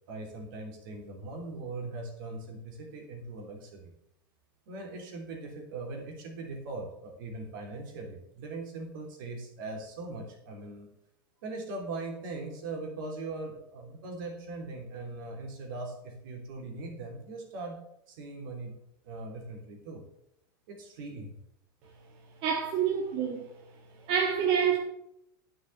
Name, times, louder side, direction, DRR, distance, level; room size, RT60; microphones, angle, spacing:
voice 1, 0.1-3.9 4.7-10.9 11.4-17.8 18.1-18.7 19.0-20.0 20.7-21.4, right 2 dB, 70° right, 3.5 m, -40 dB
voice 2, 22.4-23.4 24.1-24.8, right 7 dB, 50° right, 1.7 m, -27 dB
10.0 x 6.4 x 6.9 m
hypercardioid pair, 100°, 11 cm